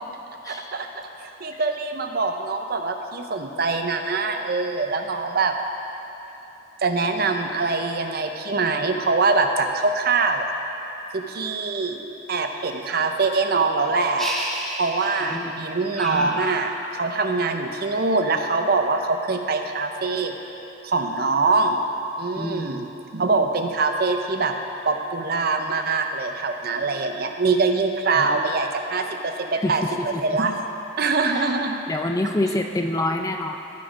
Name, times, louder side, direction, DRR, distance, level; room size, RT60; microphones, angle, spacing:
voice 1, 0.5-0.9 1.2-5.5 6.8-10.5 11.1-12.0 12.3-14.3 14.8-20.3 20.8-21.8 22.2-24.5 24.8-29.8 30.2-30.5 31.0-31.8, right 3 dB, 50° right, 5 dB, 0.6 m, -23 dB
sound 1, 14.2-15.5 16.0-17.2, right 1 dB, ahead, 0.8 m, -32 dB
voice 2, 22.4-22.8 28.2-28.4 29.6-29.7 30.1-30.4 31.3-31.4 31.9-33.6, left 1 dB, 15° left, 4 dB, 0.4 m, -26 dB
14.5 x 5.1 x 5.0 m, 3.0 s
head